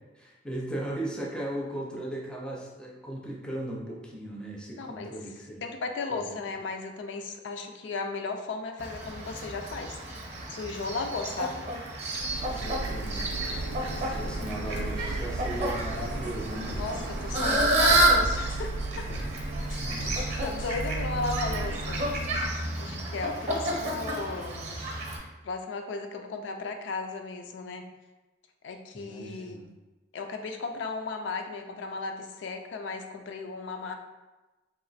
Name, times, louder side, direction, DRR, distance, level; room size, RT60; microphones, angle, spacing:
voice 1, 0.2-5.6 6.1-6.4 12.4-16.8 19.8-20.5 21.5-21.8 22.5-23.1 28.9-29.7, right 1 dB, 5° left, -2 dB, 0.4 m, -38 dB
voice 2, 4.8-5.1 5.6-10.0 10.5-11.6 16.8-19.1 20.4-22.0 22.8-24.8 25.4-27.9 28.6-29.8 30.1-33.9, left 4 dB, 65° left, 5 dB, 0.3 m, -35 dB
Fowl, 8.8-25.2, right 1 dB, 35° right, 0.7 m, -30 dB
Printer, 12.1-22.5, right 2 dB, 60° right, 0.3 m, -35 dB
sound 1, 16.1-16.3 16.7-16.9 17.3-17.5 17.9-18.8 19.1-19.3 19.7-20.2 20.6-20.9, equal, 80° left, 0.8 m, -37 dB
3.0 x 2.5 x 4.0 m, 1.1 s
head